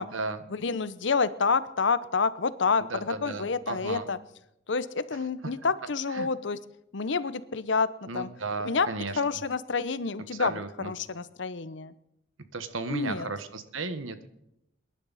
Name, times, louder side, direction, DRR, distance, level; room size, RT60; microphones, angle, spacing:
voice 1, 0.5-4.2 4.7-6.6 6.9-8.3 8.6-8.9 9.1-11.9 12.9-13.3, left 4 dB, 65° left, 16 dB, 0.7 m, -28 dB
voice 2, 2.9-4.1 6.1-6.3 8.1-9.2 10.4-10.9 12.5-14.3, right 3 dB, 85° right, 10 dB, 1.3 m, -34 dB
22.0 x 11.0 x 4.1 m, 0.80 s
head